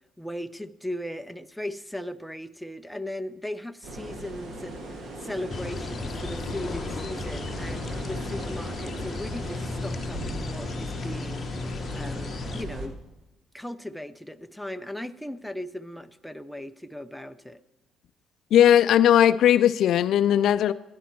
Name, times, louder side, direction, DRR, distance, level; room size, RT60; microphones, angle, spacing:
voice 1, 0.2-11.5 11.9-13.0 13.5-17.6, left 1 dB, ahead, 0.5 m, -37 dB
sound 1, 3.8-12.9, right 2 dB, 60° right, 1.6 m, -38 dB
sound 2, 5.5-12.6, left 4 dB, 40° left, 0.7 m, -35 dB
voice 2, 18.5-20.7, left 10 dB, 70° left, 0.3 m, -18 dB
11.5 x 10.5 x 4.4 m
cardioid pair, 100°, 0 cm